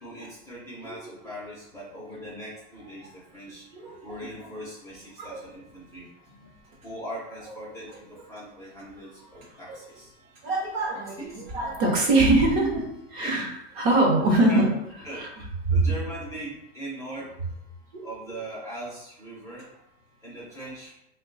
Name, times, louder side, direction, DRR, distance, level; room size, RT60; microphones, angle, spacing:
voice 1, 0.0-3.7 4.0-6.5 6.8-10.1 11.2-11.4 13.2-13.3 14.5-14.6 15.0-17.3 18.0-19.8 20.2-20.9, right 1 dB, 10° left, -8 dB, 0.6 m, -40 dB
voice 2, 3.7-4.3 5.2-5.3 9.7-9.8 10.4-12.8 13.1-14.7 15.1-15.3 17.9-18.1, right 2 dB, 40° right, 0 dB, 0.8 m, -23 dB
3.2 x 2.2 x 3.7 m, 0.81 s
supercardioid pair, 160°, 34 cm